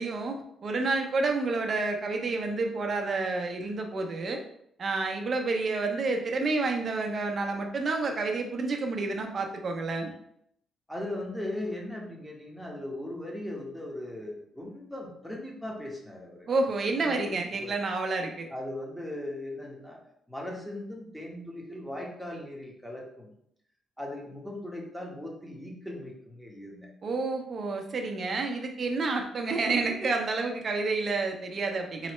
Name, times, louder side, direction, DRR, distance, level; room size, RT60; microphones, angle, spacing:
voice 1, 0.0-4.4 4.8-10.1 16.5-18.5 27.0-32.1, right 3 dB, 45° right, 3 dB, 0.8 m, -29 dB
voice 2, 10.9-16.5 17.0-17.8 18.5-20.0 20.3-23.3 24.0-26.9, left 1 dB, 5° left, -2 dB, 1.2 m, -38 dB
4.0 x 3.2 x 3.1 m, 0.73 s
cardioid pair, 90°, 0 cm